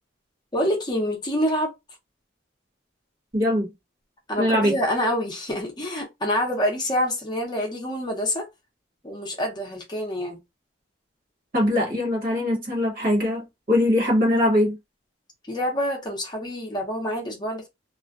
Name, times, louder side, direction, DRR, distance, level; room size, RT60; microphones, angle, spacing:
voice 1, 0.5-1.7 4.3-8.5 9.0-10.4 15.5-17.7, equal, 20° left, 0.6 m, -26 dB
voice 2, 3.3-3.7 4.4-4.7 11.5-14.8, left 1 dB, 45° right, 1.1 m, -22 dB
2.4 x 2.1 x 2.4 m
head